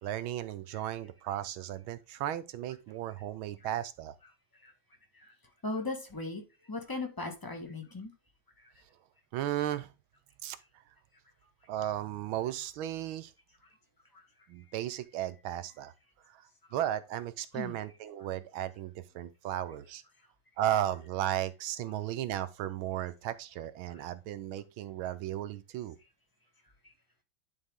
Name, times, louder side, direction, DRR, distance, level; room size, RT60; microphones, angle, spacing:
voice 1, 0.0-4.1 9.3-9.9 10.4-10.6 11.7-13.3 14.5-15.9 16.2-20.0 20.6-26.0, right 12 dB, 75° right, 1.5 m, -35 dB
voice 2, 5.6-6.4 6.7-8.1 17.5-17.8, left 2 dB, 10° left, 1.2 m, -37 dB
11.0 x 4.2 x 3.6 m
omnidirectional pair, 2.4 m